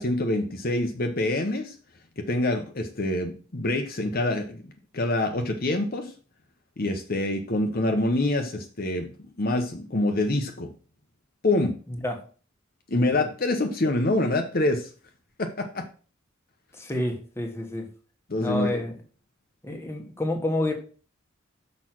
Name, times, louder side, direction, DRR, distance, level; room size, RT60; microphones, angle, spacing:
voice 1, 0.0-1.7 2.2-6.1 6.8-9.1 9.4-10.7 11.4-11.7 12.9-14.9 15.4-15.9 18.3-18.9, left 2 dB, 50° left, 4 dB, 0.9 m, -26 dB
voice 2, 16.8-17.9 18.4-18.9 19.6-20.7, left 1 dB, 15° left, 3 dB, 1.4 m, -29 dB
6.4 x 5.4 x 6.0 m, 0.39 s
head